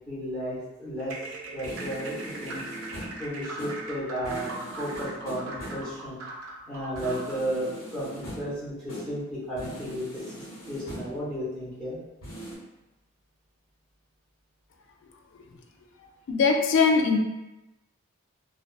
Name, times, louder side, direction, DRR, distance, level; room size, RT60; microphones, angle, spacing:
voice 1, 0.1-1.1 1.5-2.6 3.2-6.1 6.7-12.0, equal, 5° left, -10 dB, 0.8 m, -33 dB
sound 1, 1.0-7.5, right 2 dB, 80° right, 0.4 m, -40 dB
sound 2, 1.6-3.3 3.6-3.9 4.2-5.9 6.9-8.6 8.9-9.2 9.6-11.3 12.2-12.6, right 1 dB, 80° left, 1.4 m, -41 dB
voice 2, 16.3-17.2, left 5 dB, 60° left, 3 dB, 0.3 m, -21 dB
2.3 x 2.3 x 2.3 m, 0.98 s
head